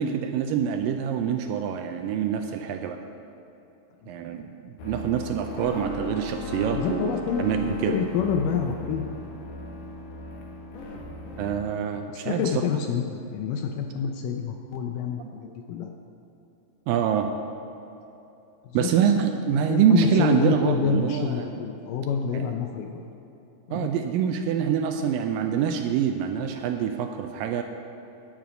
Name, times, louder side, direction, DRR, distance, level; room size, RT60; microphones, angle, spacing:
voice 1, 0.0-3.0 4.1-7.1 7.4-8.0 11.4-12.5 15.2-15.3 16.9-17.3 18.7-21.5 22.3-22.5 23.7-27.6, right 8 dB, 80° right, 6 dB, 2.1 m, -25 dB
sound 1, 4.8-11.7, left 1 dB, 65° left, 2.5 m, -37 dB
voice 2, 6.8-7.4 7.8-9.1 12.1-15.9 18.6-19.2 19.6-23.0 23.7-23.9, left 7 dB, 80° left, 3 dB, 2.0 m, -28 dB
11.5 x 9.0 x 5.1 m, 3.0 s
omnidirectional pair, 4.3 m